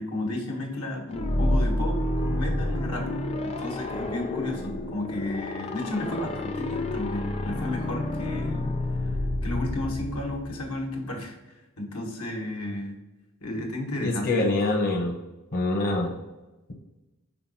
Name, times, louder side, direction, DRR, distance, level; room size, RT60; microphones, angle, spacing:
voice 1, 0.0-3.1 3.4-8.7 9.4-12.9 13.4-14.5, left 1 dB, 85° left, 0 dB, 1.5 m, -33 dB
sound 1, 1.1-10.8, left 1 dB, 30° left, 0.5 m, -29 dB
voice 2, 14.0-15.2 15.5-16.1, left 2 dB, 45° left, 0 dB, 0.8 m, -25 dB
5.7 x 4.1 x 4.2 m, 1.1 s
head